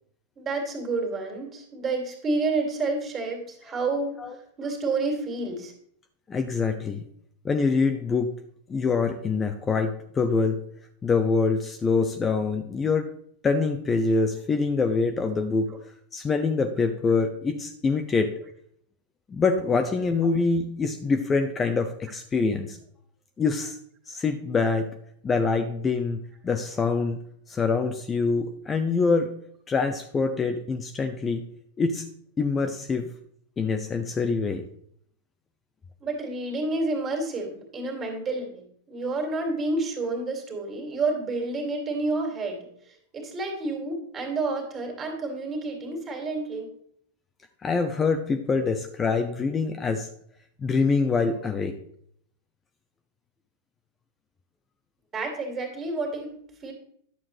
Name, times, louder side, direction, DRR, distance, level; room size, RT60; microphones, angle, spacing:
voice 1, 0.4-5.7 36.0-46.7 55.1-56.7, right 3 dB, 25° right, 1 dB, 2.4 m, -30 dB
voice 2, 6.3-7.0 7.4-8.3 8.7-10.6 11.0-13.1 13.4-15.7 16.1-18.3 19.3-22.8 23.4-23.8 24.1-24.9 25.2-27.2 27.5-29.3 29.7-31.4 31.8-32.0 32.4-33.1 33.6-34.6 47.6-50.1 50.6-51.8, left 4 dB, 20° left, 6 dB, 0.6 m, -25 dB
10.5 x 7.1 x 3.2 m, 0.66 s
figure-of-eight pair, 90°, 0 cm